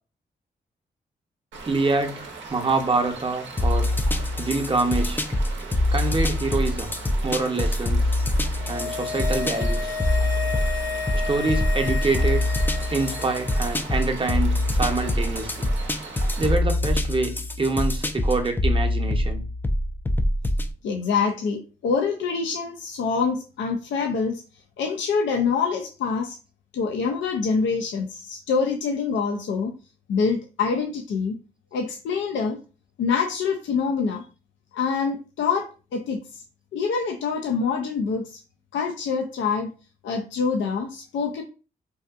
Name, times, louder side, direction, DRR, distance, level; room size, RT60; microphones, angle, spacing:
sound 1, 1.5-16.5, right 4 dB, 80° right, 0.6 m, -40 dB
voice 1, 1.7-3.9 4.4-5.2 5.9-6.9 7.2-8.0 8.7-10.0 11.3-12.4 12.9-15.7 16.4-19.4, right 3 dB, 25° right, 0.6 m, -26 dB
sound 2, 3.6-20.7, left 1 dB, 10° left, 0.3 m, -24 dB
sound 3, 8.4-13.8 14.1-14.2, left 5 dB, 40° left, 0.7 m, -32 dB
voice 2, 20.8-24.4 24.8-26.4 26.7-29.7 30.1-31.4 31.7-32.6 33.0-34.2 34.7-36.4 36.7-38.4 38.7-39.7 40.0-41.4, left 5 dB, 80° left, 0.4 m, -25 dB
2.7 x 2.4 x 2.3 m
supercardioid pair, 45°, 19 cm